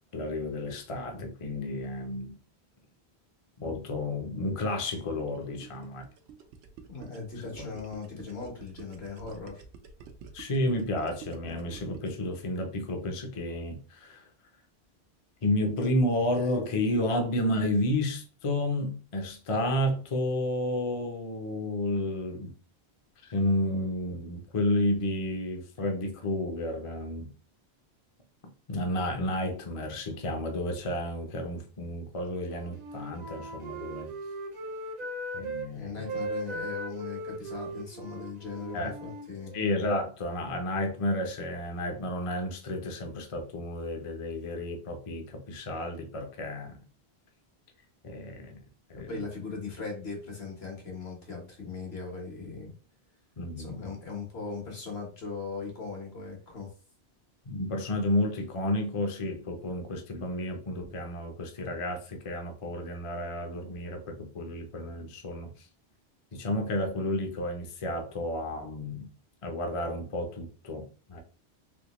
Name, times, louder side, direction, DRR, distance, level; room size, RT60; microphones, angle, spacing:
voice 1, 0.1-2.4 3.6-6.1 7.6-7.7 10.3-14.3 15.4-22.5 23.2-27.3 28.7-34.1 35.3-36.2 38.7-38.9 39.5-46.8 48.0-48.6 48.9-49.1 53.4-53.9 57.5-65.7 66.3-69.1 69.4-71.2, left 1 dB, 40° left, 0.6 m, -31 dB
Gurgling, 5.2-12.3, right 6 dB, 90° right, 0.9 m, -48 dB
voice 2, 6.9-9.6 35.7-39.5 49.0-52.7 53.6-56.7, left 4 dB, 75° left, 1.5 m, -39 dB
Wind instrument woodwind instrument, 32.4-35.7 36.0-39.8, right 2 dB, 45° right, 0.6 m, -38 dB
3.5 x 2.9 x 2.9 m
omnidirectional pair, 1.1 m